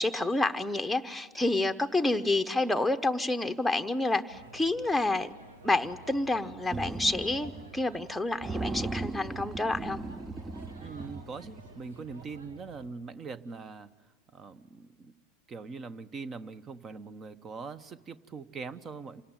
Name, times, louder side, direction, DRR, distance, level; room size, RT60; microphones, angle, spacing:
voice 1, 0.0-5.3 5.6-10.0, left 2 dB, ahead, 6 dB, 1.0 m, -29 dB
sound 1, 4.3-12.9, right 2 dB, 85° right, 1.8 m, -51 dB
sound 2, 6.7-7.7 8.0-8.1 8.4-11.8, right 3 dB, 15° right, 0.7 m, -37 dB
voice 2, 10.8-15.1 15.5-19.2, right 4 dB, 35° right, 15 dB, 1.1 m, -42 dB
27.5 x 18.5 x 9.2 m, 1.4 s
hypercardioid pair, 85°, 0 cm